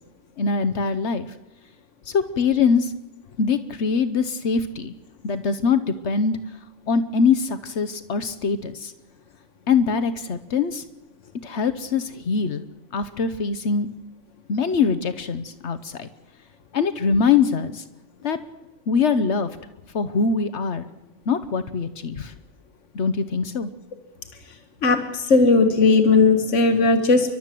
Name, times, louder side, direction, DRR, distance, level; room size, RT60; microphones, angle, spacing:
voice 1, 0.4-1.3 2.1-2.9 3.4-4.9 5.2-6.4 6.9-8.9 9.7-10.8 11.4-12.6 12.9-13.9 14.5-16.1 16.7-17.8 18.2-18.4 18.9-19.5 19.9-20.9 21.3-22.3 22.9-23.7, left 5 dB, 70° left, 12 dB, 1.2 m, -23 dB
voice 2, 24.8-27.4, left 3 dB, 90° left, 7 dB, 1.6 m, -17 dB
30.0 x 12.0 x 7.6 m, 1.0 s
omnidirectional pair, 1.2 m